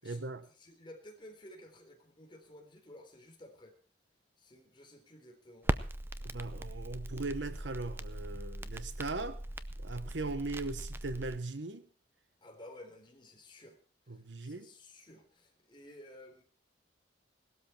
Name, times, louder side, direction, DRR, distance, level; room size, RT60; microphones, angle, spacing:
voice 1, 0.0-0.5 6.2-9.4 9.8-11.9 14.1-14.7, right 3 dB, 70° right, 1.2 m, -39 dB
voice 2, 0.6-3.7 4.4-5.7 12.4-13.8 14.1-16.4, left 1 dB, 25° left, 3.6 m, -54 dB
Crackle, 5.6-11.4, right 1 dB, 10° right, 0.6 m, -39 dB
18.0 x 13.0 x 4.4 m
head